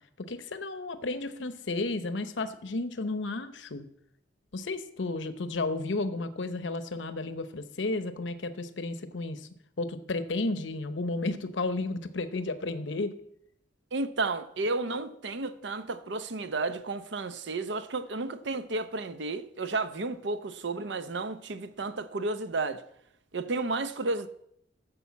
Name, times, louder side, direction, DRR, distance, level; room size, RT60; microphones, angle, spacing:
voice 1, 0.2-3.8 4.5-9.5 9.8-13.1, left 2 dB, 70° left, 0.8 m, -33 dB
voice 2, 13.9-22.8 23.3-24.3, right 3 dB, 65° right, 0.7 m, -32 dB
9.8 x 6.9 x 7.2 m
head